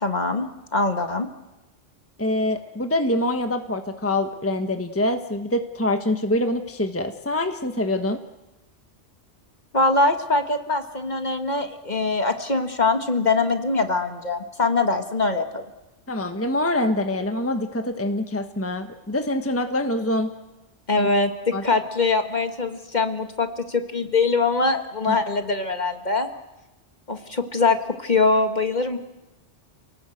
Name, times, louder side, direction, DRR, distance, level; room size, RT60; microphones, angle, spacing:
voice 1, 0.0-0.5 0.7-1.3 9.7-15.7 20.9-26.3 27.1-29.0, left 3 dB, 40° left, 6 dB, 1.8 m, -23 dB
voice 2, 2.2-8.2 16.1-20.3 21.0-21.1 21.5-21.6 25.1-25.2, left 1 dB, 10° left, 7 dB, 1.2 m, -25 dB
29.5 x 19.0 x 7.9 m, 1.0 s
omnidirectional pair, 1.2 m